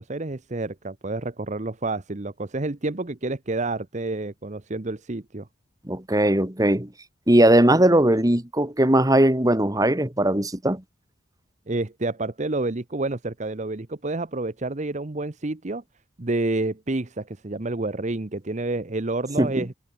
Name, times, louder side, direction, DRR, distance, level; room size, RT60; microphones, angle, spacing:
voice 1, 0.0-5.5 11.7-15.8 16.2-19.7, right 2 dB, 40° right, 0.9 m, -29 dB
voice 2, 5.9-6.9 7.3-10.8 19.4-19.7, right 1 dB, 20° right, 2.0 m, -19 dB
head